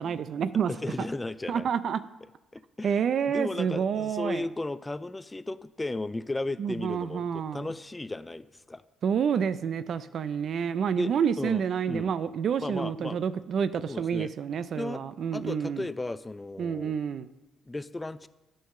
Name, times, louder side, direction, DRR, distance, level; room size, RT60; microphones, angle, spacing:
voice 1, 0.0-0.7 1.0-1.1 1.5-2.0 2.8-4.4 6.6-7.7 9.0-15.8 16.6-17.3, right 7 dB, 60° right, 0.4 m, -28 dB
voice 2, 0.7-1.7 2.5-8.8 11.0-12.1 12.6-13.2 13.9-14.3 14.8-15.0 15.3-16.9 17.7-18.3, left 2 dB, 15° left, 0.4 m, -35 dB
8.7 x 5.5 x 6.5 m
cardioid pair, 90°, 0 cm